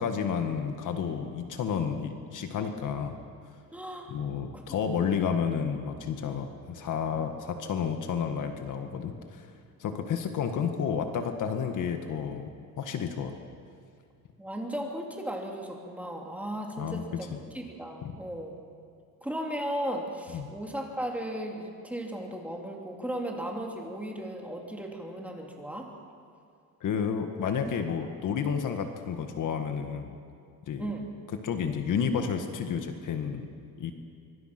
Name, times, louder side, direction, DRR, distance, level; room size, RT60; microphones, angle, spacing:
voice 1, 0.0-3.2 4.1-9.5 9.8-13.4 16.8-17.4 18.0-18.1 20.3-20.5 26.8-30.2 30.7-30.9 31.4-33.5 33.8-33.9, left 7 dB, 55° left, 6 dB, 1.8 m, -31 dB
voice 2, 3.7-4.1 4.5-4.8 14.4-17.3 17.5-18.5 19.2-25.9 30.8-31.1, right 1 dB, 5° right, 0 dB, 3.1 m, -36 dB
24.5 x 23.5 x 6.0 m, 2.4 s
cardioid pair, 145°, 37 cm